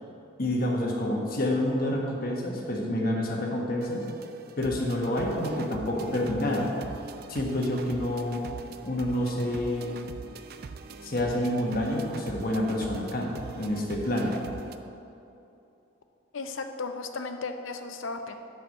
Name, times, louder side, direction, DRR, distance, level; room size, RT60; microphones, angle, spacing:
voice 1, 0.4-4.0 4.6-6.7 7.3-8.4 8.8-9.9 11.0-14.4, left 1 dB, 45° left, -1 dB, 1.3 m, -28 dB
sound 1, 3.8-14.8, right 4 dB, 50° right, 0.4 m, -43 dB
voice 2, 16.3-18.4, left 3 dB, 75° left, 7 dB, 0.6 m, -35 dB
7.8 x 5.9 x 6.4 m, 2.8 s
head